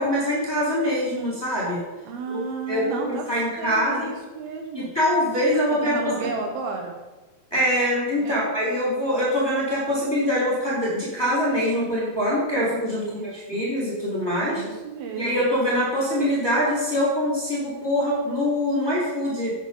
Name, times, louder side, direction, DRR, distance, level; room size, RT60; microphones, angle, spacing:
voice 1, 0.0-1.8 2.3-4.1 4.8-6.1 7.5-14.6 15.2-19.5, equal, 5° left, -7 dB, 3.9 m, -24 dB
voice 2, 2.1-3.3 3.6-4.9 5.7-7.0 8.2-8.4 12.9-13.6 14.5-15.4, right 4 dB, 75° right, 3 dB, 3.0 m, -33 dB
11.5 x 8.4 x 5.5 m, 1.1 s
omnidirectional pair, 4.5 m